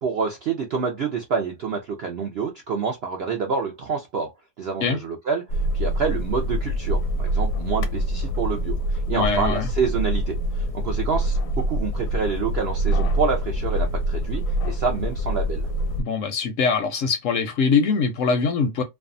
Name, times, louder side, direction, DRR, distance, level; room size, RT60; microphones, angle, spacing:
voice 1, 0.0-4.3 4.6-5.4 5.7-15.7, right 5 dB, 70° right, 0.6 m, -27 dB
sound 1, 5.5-16.0, equal, 85° left, 1.1 m, -25 dB
voice 2, 9.1-9.7 16.0-18.8, left 5 dB, 65° left, 0.8 m, -22 dB
2.6 x 2.2 x 2.4 m
omnidirectional pair, 1.7 m